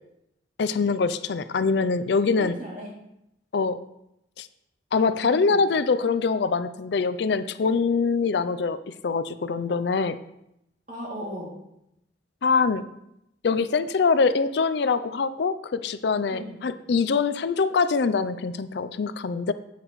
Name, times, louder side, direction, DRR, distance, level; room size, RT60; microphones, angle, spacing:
voice 1, 0.6-2.6 3.5-3.8 4.4-4.5 4.9-10.2 12.4-12.8 13.4-19.5, left 4 dB, 60° left, 13 dB, 0.4 m, -24 dB
voice 2, 2.4-2.9 5.0-5.6 10.9-11.5 16.3-16.6, equal, 40° right, -4 dB, 2.7 m, -37 dB
8.8 x 8.4 x 3.1 m, 0.82 s
head